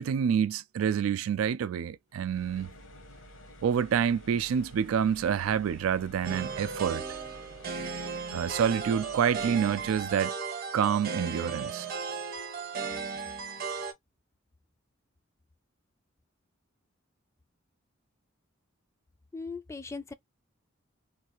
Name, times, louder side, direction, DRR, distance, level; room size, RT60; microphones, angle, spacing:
voice 1, 0.0-2.7 3.6-7.0 8.3-10.3 10.7-11.9, right 8 dB, 90° right, 0.3 m, -27 dB
sound 1, 2.1-10.2, equal, 70° left, 1.0 m, -50 dB
sound 2, 6.2-13.9, right 5 dB, 50° right, 0.8 m, -36 dB
voice 2, 19.3-20.1, left 4 dB, 15° left, 0.3 m, -38 dB
3.2 x 2.3 x 2.9 m
head